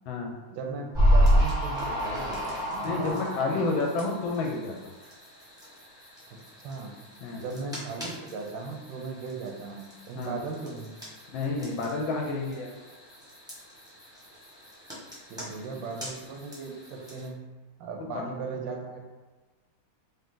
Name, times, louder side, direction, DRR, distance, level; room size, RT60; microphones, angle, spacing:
voice 1, 0.5-3.7 6.3-7.0 7.3-11.0 15.3-17.4 17.8-19.0, right 4 dB, 70° right, 2 dB, 1.2 m, -38 dB
sound 1, 0.9-17.3, equal, 5° right, 0.6 m, -31 dB
voice 2, 2.8-4.7 7.2-7.4 10.1-10.4 11.3-12.7 18.0-18.2, left 3 dB, 75° left, 0 dB, 1.3 m, -30 dB
3.7 x 2.7 x 3.7 m, 1.3 s
omnidirectional pair, 2.4 m